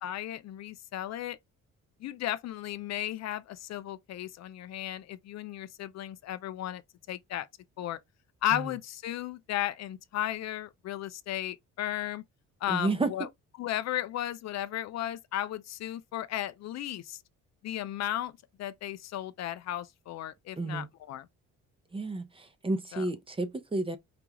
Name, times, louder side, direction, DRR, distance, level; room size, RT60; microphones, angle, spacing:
voice 1, 0.0-1.4 2.0-6.8 7.1-7.5 7.8-8.0 8.4-12.2 12.6-13.3 13.6-17.2 17.6-18.3 18.6-21.3 22.9-23.1, left 12 dB, 60° left, 0.4 m, -35 dB
voice 2, 12.7-13.1 20.6-20.9 21.9-24.0, right 2 dB, 20° right, 0.7 m, -31 dB
5.0 x 2.3 x 2.8 m
cardioid pair, 90°, 30 cm